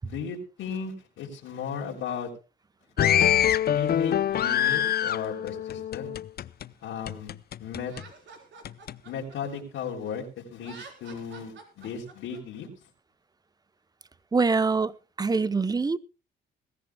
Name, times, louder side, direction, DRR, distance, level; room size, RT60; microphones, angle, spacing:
voice 1, 0.0-2.3 3.7-6.1 6.8-7.3 7.6-8.0 9.1-12.7, left 6 dB, 80° left, 3.5 m, -35 dB
sound 1, 3.0-6.7 7.1-8.0 8.7-9.0, left 10 dB, 50° left, 0.6 m, -25 dB
Laughter, 7.8-10.1 10.5-12.4, right 5 dB, 65° right, 4.1 m, -48 dB
voice 2, 14.3-14.9 15.2-16.0, right 4 dB, 20° right, 0.8 m, -24 dB
22.0 x 14.0 x 2.3 m
cardioid pair, 90°, 20 cm